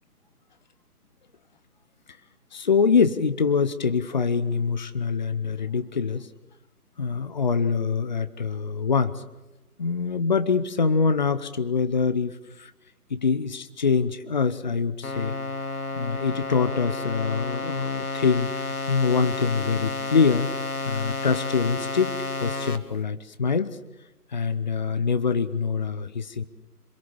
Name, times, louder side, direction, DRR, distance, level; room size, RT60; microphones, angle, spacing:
voice 1, 2.5-6.3 7.0-9.2 9.8-12.7 13.1-15.3 15.9-20.5 20.8-23.8 24.3-26.4, left 5 dB, 30° left, 12 dB, 0.8 m, -24 dB
sound 1, 15.0-22.8, left 3 dB, 65° left, 2.1 m, -31 dB
26.5 x 22.0 x 7.2 m, 1.0 s
figure-of-eight pair, 145°, 47 cm